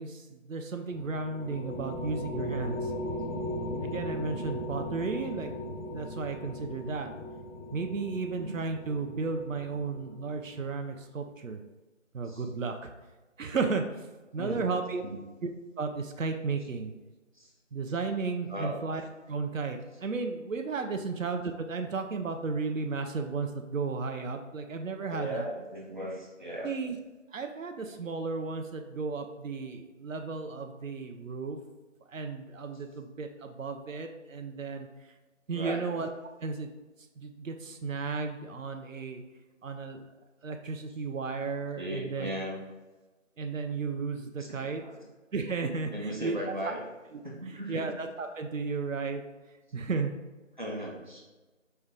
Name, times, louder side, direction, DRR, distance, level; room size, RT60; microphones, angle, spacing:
voice 1, 0.0-2.9 3.8-7.1 7.7-11.6 12.1-12.9 13.4-14.1 14.3-15.0 15.4-15.5 15.8-16.9 17.7-19.0 19.3-25.5 26.6-27.0 27.3-31.6 32.1-34.9 35.5-36.1 36.4-36.7 37.2-39.2 39.6-40.1 40.4-42.3 43.4-44.8 45.3-46.7 47.1-49.2 49.7-50.1, right 4 dB, 90° right, 5 dB, 0.6 m, -34 dB
sound 1, 0.9-10.7, left 1 dB, 90° left, 0.6 m, -38 dB
voice 2, 25.1-26.7 35.5-35.9 41.7-42.6 44.5-45.0 45.9-46.8 47.2-47.8 50.6-51.2, equal, 40° right, -3 dB, 0.7 m, -37 dB
5.2 x 2.3 x 3.6 m, 1.2 s
figure-of-eight pair, 175°, 39 cm